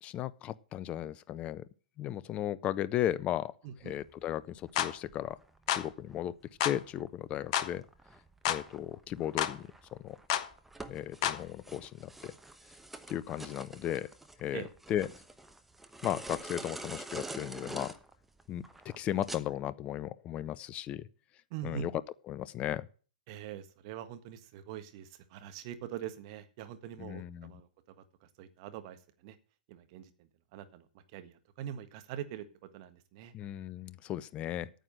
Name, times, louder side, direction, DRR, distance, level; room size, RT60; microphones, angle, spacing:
voice 1, 0.0-1.7 2.0-3.5 3.8-5.4 5.7-6.3 6.6-7.8 8.5-10.2 10.9-12.3 13.1-14.1 14.4-14.6 14.9-15.1 16.0-17.9 18.5-21.0 21.6-21.9 22.3-22.9 27.0-27.5 33.3-34.7, left 12 dB, 25° left, 0.6 m, -35 dB
voice 2, 3.6-3.9 14.5-14.7 21.5-21.9 23.3-27.7 28.4-29.0 29.2-29.4 29.7-30.1 30.5-30.8 31.1-32.4 32.7-33.3, right 10 dB, 40° right, 1.5 m, -43 dB
sound 1, 3.8-19.4, right 2 dB, 5° right, 1.0 m, -47 dB
sound 2, 4.8-4.9 5.7-5.9 6.6-6.8 7.5-7.7 8.5-8.6 9.4-9.6 10.3-10.5 11.2-11.4, left 11 dB, 45° left, 1.1 m, -30 dB
9.2 x 7.8 x 7.8 m
figure-of-eight pair, 115°, 5 cm